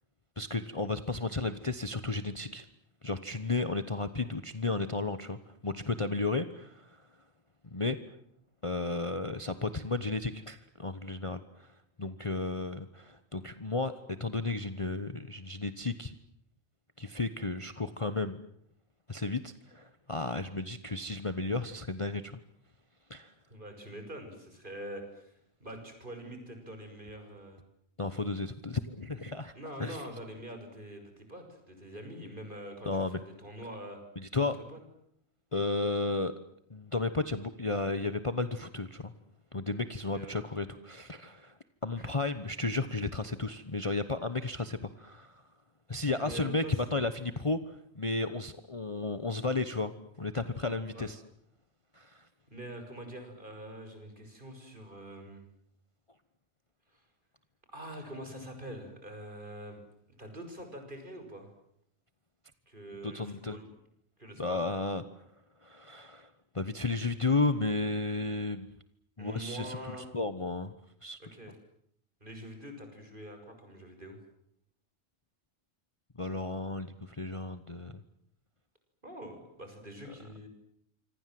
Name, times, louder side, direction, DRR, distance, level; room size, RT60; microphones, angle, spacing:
voice 1, 0.4-2.7 3.0-6.9 7.7-8.0 8.6-11.7 12.0-16.1 17.0-18.4 19.1-22.3 23.1-23.3 28.0-29.5 29.8-30.0 32.8-33.2 34.2-34.6 35.5-36.3 36.7-39.1 39.5-41.5 41.8-45.4 45.9-51.2 51.9-52.2 63.0-63.6 64.4-65.0 65.6-66.3 66.5-68.7 69.2-70.7 71.0-71.2 76.2-78.0, left 3 dB, 25° left, 11 dB, 1.1 m, -33 dB
voice 2, 23.5-25.3 25.6-27.6 29.5-34.0 34.7-34.8 40.1-40.3 42.0-42.1 46.2-46.8 50.9-51.1 52.5-55.4 56.9-57.0 57.7-59.8 60.2-61.5 62.7-63.6 64.2-64.6 69.2-70.1 71.2-71.6 72.2-74.2 79.0-80.5, equal, 40° right, 6 dB, 6.5 m, -44 dB
27.0 x 25.5 x 7.8 m, 0.69 s
omnidirectional pair, 1.4 m